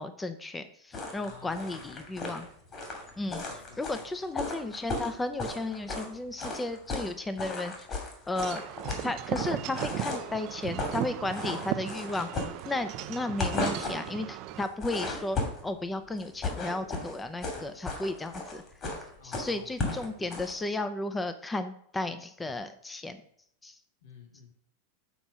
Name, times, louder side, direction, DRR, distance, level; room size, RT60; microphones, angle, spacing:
voice 1, 0.0-2.5 3.2-8.6 9.0-12.3 12.7-18.6 19.2-23.2 23.6-23.8, left 2 dB, 10° left, 10 dB, 0.6 m, -34 dB
sound 1, 0.9-6.1 6.4-7.1 7.4-10.3 10.6-11.0 11.3-13.0 13.3-14.1 14.6-15.7 16.2-20.5, left 3 dB, 35° left, 2.7 m, -35 dB
voice 2, 1.2-2.2 3.4-3.8 13.0-13.5 19.2-20.3 24.0-24.5, left 5 dB, 80° left, 2 dB, 2.3 m, -52 dB
Wind chime / Wind, 8.3-14.6, right 15 dB, 50° right, 0.4 m, -37 dB
7.1 x 4.3 x 6.0 m, 0.66 s
hypercardioid pair, 120°, 0 cm